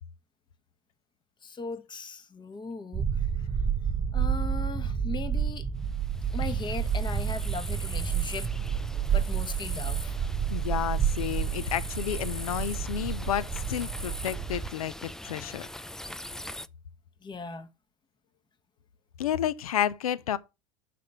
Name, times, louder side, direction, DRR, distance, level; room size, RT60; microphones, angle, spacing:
voice 1, 1.4-3.3 4.1-5.7 6.3-8.5 9.1-10.2 17.2-17.7, left 4 dB, 25° left, 1.1 m, -38 dB
sound 1, 2.9-14.7, right 7 dB, 20° right, 0.7 m, -30 dB
sound 2, 5.8-16.7, left 1 dB, 5° left, 0.3 m, -42 dB
voice 2, 10.5-15.7 19.2-20.4, left 10 dB, 90° left, 0.5 m, -31 dB
6.4 x 4.2 x 6.5 m
hypercardioid pair, 85°, 18 cm